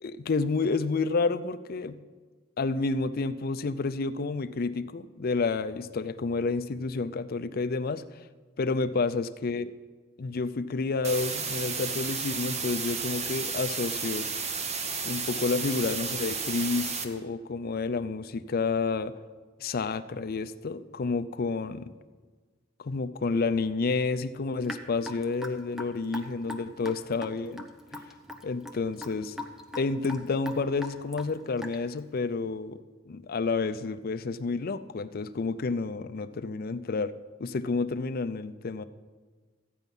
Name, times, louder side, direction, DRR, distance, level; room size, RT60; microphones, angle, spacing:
voice 1, 0.0-2.0 2.6-8.2 8.6-9.7 10.2-14.3 15.0-19.2 19.6-21.9 22.8-27.7 27.9-28.0 28.4-29.4 29.7-37.1 37.4-38.8, left 4 dB, 50° left, 12 dB, 0.5 m, -30 dB
sound 1, 11.0-17.0, right 5 dB, 35° right, 0.9 m, -32 dB
Raindrop / Drip, 24.6-32.0, left 1 dB, ahead, 0.8 m, -41 dB
14.0 x 9.1 x 5.4 m, 1.4 s
head